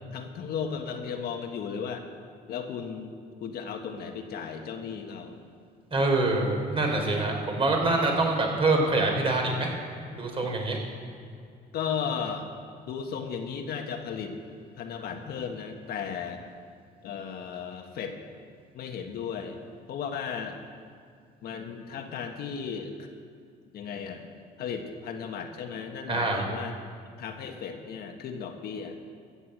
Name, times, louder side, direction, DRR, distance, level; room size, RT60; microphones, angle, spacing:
voice 1, 0.1-2.1 2.5-3.1 3.4-5.4 11.7-12.5 12.9-14.3 14.8-16.4 17.0-18.2 18.7-19.6 19.9-20.6 21.4-23.1 23.7-24.3 24.6-26.8 27.2-29.0, left 6 dB, 65° left, 4 dB, 1.5 m, -35 dB
voice 2, 5.9-9.7 10.1-10.8 26.1-26.4, right 2 dB, 35° right, 1 dB, 3.4 m, -25 dB
14.5 x 8.1 x 8.0 m, 2.2 s
cardioid pair, 110°, 17 cm